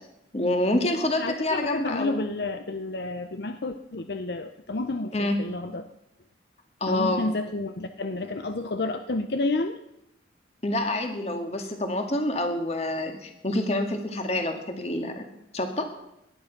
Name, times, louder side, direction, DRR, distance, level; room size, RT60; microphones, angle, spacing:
voice 1, 0.3-2.3 5.1-5.4 6.8-7.2 10.6-15.3 15.5-15.9, left 1 dB, 35° left, 5 dB, 2.0 m, -27 dB
voice 2, 1.2-5.9 6.9-9.8, left 2 dB, 60° left, 9 dB, 0.7 m, -30 dB
18.0 x 11.5 x 5.9 m, 0.84 s
head